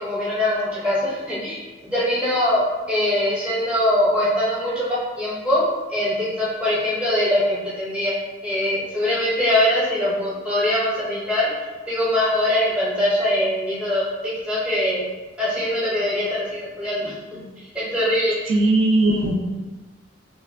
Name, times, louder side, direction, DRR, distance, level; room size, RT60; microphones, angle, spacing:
voice 1, 0.0-5.6 5.9-8.1 8.4-11.5 11.9-15.0 15.4-18.4, left 1 dB, 5° right, -8 dB, 0.7 m, -22 dB
voice 2, 18.5-19.3, right 2 dB, 80° right, 1 dB, 0.3 m, -18 dB
2.9 x 2.1 x 2.3 m, 1.2 s
head